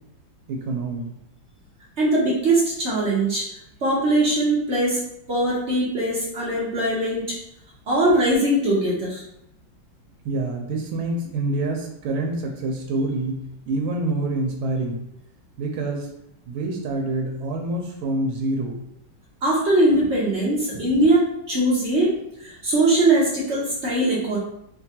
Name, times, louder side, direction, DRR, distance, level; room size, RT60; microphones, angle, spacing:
voice 1, 0.5-1.1 10.2-15.1 15.6-16.1 16.5-18.8, right 2 dB, 90° right, 1 dB, 1.5 m, -26 dB
voice 2, 2.0-3.5 3.8-5.0 5.3-7.3 7.9-9.2 19.4-22.2 22.4-24.4, right 1 dB, 60° right, -6 dB, 0.7 m, -21 dB
4.5 x 2.2 x 2.8 m, 0.78 s
omnidirectional pair, 2.2 m